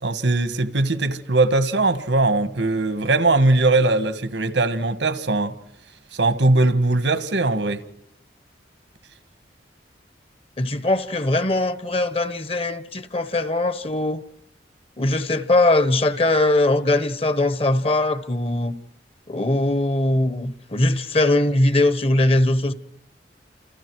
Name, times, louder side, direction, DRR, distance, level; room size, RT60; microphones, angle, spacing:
voice 1, 0.0-5.5 6.1-7.8, right 2 dB, 85° right, 1.4 m, -20 dB
voice 2, 10.6-14.2 15.0-18.7 19.3-22.7, left 2 dB, 30° left, 1.1 m, -21 dB
29.5 x 28.0 x 4.7 m
head